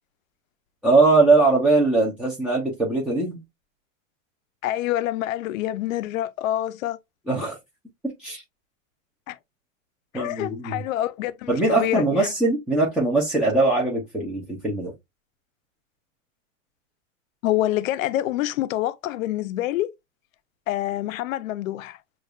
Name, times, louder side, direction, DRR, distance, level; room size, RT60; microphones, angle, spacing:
voice 1, 0.8-3.4 7.3-7.6 8.2-8.4 10.1-10.8 11.5-14.9, right 3 dB, ahead, 0.4 m, -21 dB
voice 2, 4.6-7.0 9.3-9.4 10.1-12.3 17.4-19.9 20.7-22.0, left 14 dB, 75° left, 0.5 m, -26 dB
6.4 x 2.3 x 2.3 m
supercardioid pair, 145°, 40 cm